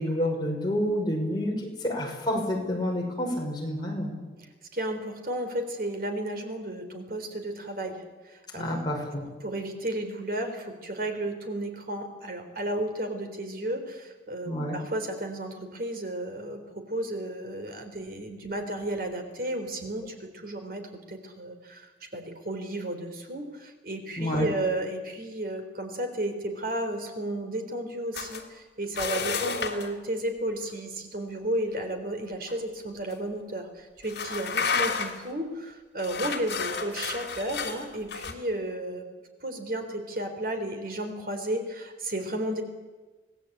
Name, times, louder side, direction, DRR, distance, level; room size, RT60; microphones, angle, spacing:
voice 1, 0.0-4.2 8.6-9.2 14.5-14.8 24.2-24.5, left 1 dB, 25° left, -1 dB, 5.6 m, -29 dB
voice 2, 4.7-8.9 9.4-20.8 21.1-21.9 22.1-39.1 39.4-42.6, right 1 dB, 55° right, 5 dB, 3.8 m, -33 dB
sound 1, 28.1-28.4 28.9-29.9 32.5-32.6 33.1-33.2 34.0-35.3 36.0-38.3, left 5 dB, 65° left, 3.2 m, -31 dB
26.0 x 18.5 x 8.8 m, 1.2 s
head